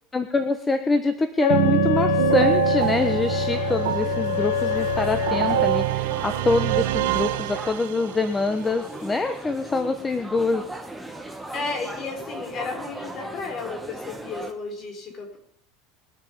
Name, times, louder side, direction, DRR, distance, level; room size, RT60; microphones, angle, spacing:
voice 1, 0.1-10.6, left 3 dB, 15° left, 8 dB, 1.1 m, -25 dB
Wind instrument woodwind instrument, 1.4-5.9, left 11 dB, 75° left, 1.2 m, -26 dB
sound 1, 1.5-8.3, right 16 dB, 85° right, 1.1 m, -25 dB
sound 2, 2.8-14.5, right 1 dB, ahead, 1.7 m, -39 dB
voice 2, 11.5-15.4, left 4 dB, 35° left, 4 dB, 4.9 m, -33 dB
21.5 x 9.0 x 7.3 m, 0.68 s
supercardioid pair, 145°, 0 cm